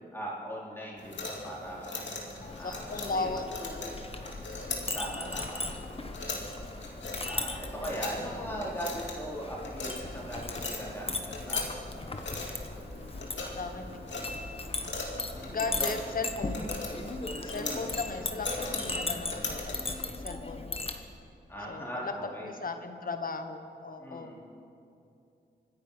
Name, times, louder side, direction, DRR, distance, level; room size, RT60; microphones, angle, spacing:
voice 1, 0.1-4.0 4.6-5.6 7.3-11.6 15.3-15.9 17.5-18.0 19.2-19.5 21.5-22.5 24.0-24.4, equal, 10° left, -5 dB, 4.1 m, -40 dB
sound 1, 1.0-19.9, left 3 dB, 80° left, 2.5 m, -40 dB
Chink clink, 2.4-21.0, left 2 dB, 30° left, 1.3 m, -38 dB
voice 2, 2.6-3.5 3.7-3.8 5.3-5.8 8.2-8.5 13.5-14.2 15.0-15.1 15.5-16.7 17.4-20.8 21.7-22.1 22.4-24.3, left 3 dB, 50° left, 7 dB, 1.2 m, -37 dB
26.0 x 9.6 x 5.7 m, 2.7 s
wide cardioid pair, 85°, 19 cm